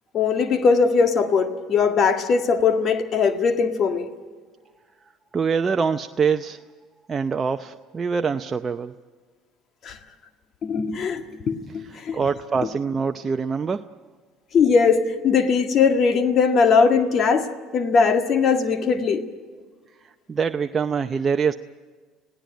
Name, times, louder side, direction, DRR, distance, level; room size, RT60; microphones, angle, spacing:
voice 1, 0.1-4.1 9.8-10.0 10.6-12.2 12.6-12.7 14.5-17.5 17.7-19.3, left 5 dB, 50° left, 1.8 m, -20 dB
voice 2, 5.3-6.6 7.1-8.9 12.1-13.9 20.3-21.6, right 5 dB, 30° right, 0.6 m, -24 dB
27.0 x 17.0 x 9.0 m
hypercardioid pair, 75°, 0 cm